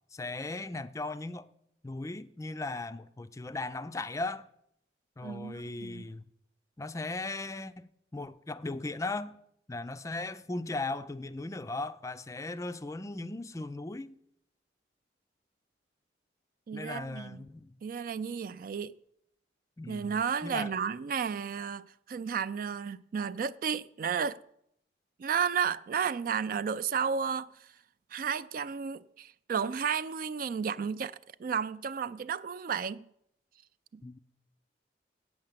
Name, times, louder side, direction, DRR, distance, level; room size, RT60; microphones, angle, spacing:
voice 1, 0.1-1.5 1.8-4.5 5.2-6.2 6.8-9.3 9.7-14.2 16.7-17.7 19.8-20.2 20.4-20.7 34.0-34.2, left 2 dB, 20° left, 0.4 m, -37 dB
voice 2, 5.2-6.1 16.7-17.4 17.8-18.9 19.9-24.4 25.2-27.5 28.1-33.0 33.9-34.0, right 6 dB, 50° right, 0.4 m, -33 dB
8.5 x 7.9 x 7.3 m
head